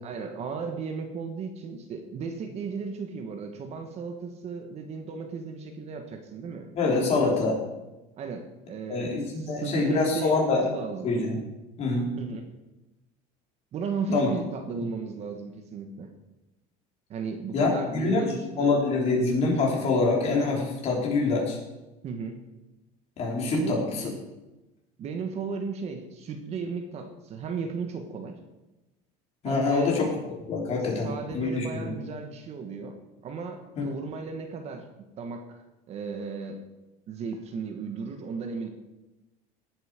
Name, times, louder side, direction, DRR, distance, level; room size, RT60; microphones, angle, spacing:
voice 1, 0.0-6.7 6.9-7.4 8.2-11.1 12.1-12.5 13.7-16.1 17.1-18.8 22.0-22.4 23.5-23.8 25.0-28.4 29.4-29.9 31.0-33.0 33.2-34.9 35.2-36.6 37.1-38.7, right 5 dB, 40° right, 5 dB, 1.5 m, -35 dB
voice 2, 6.8-7.5 8.9-10.6 11.0-11.4 11.8-12.1 14.1-14.3 17.5-18.3 18.6-21.6 23.2-24.1 29.4-30.1 30.5-31.9 33.8-33.9, left 3 dB, 40° left, -2 dB, 4.6 m, -25 dB
17.5 x 8.0 x 5.2 m, 1.0 s
cardioid pair, 145°, 17 cm